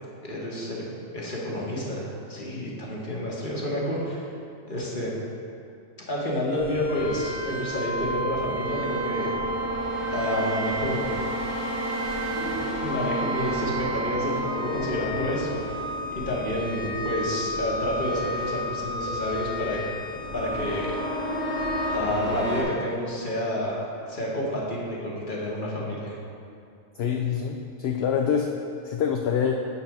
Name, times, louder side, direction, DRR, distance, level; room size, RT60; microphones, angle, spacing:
voice 1, 0.2-0.8 1.1-4.3 4.7-5.1 6.1-9.3 10.1-11.1 12.4-12.5 12.8-15.6 16.1-19.8 20.3-21.0 21.9-23.8 24.1-26.2, left 1 dB, 40° left, -5 dB, 1.3 m, -29 dB
sound 1, 6.5-22.6, equal, 80° right, 2.2 m, -30 dB
voice 2, 27.0-28.5 28.8-29.5, left 7 dB, 65° left, 1 dB, 0.7 m, -25 dB
8.4 x 4.1 x 5.9 m, 2.4 s
omnidirectional pair, 1.4 m